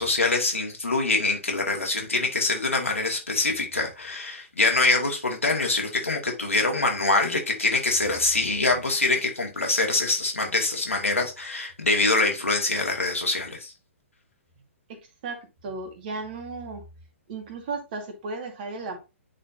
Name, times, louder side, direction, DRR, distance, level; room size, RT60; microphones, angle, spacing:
voice 1, 0.0-13.7, left 3 dB, 80° left, 2.3 m, -24 dB
voice 2, 14.9-16.8 17.3-19.0, right 3 dB, 40° right, 2.1 m, -35 dB
9.7 x 4.3 x 2.8 m
figure-of-eight pair, 120°, 7 cm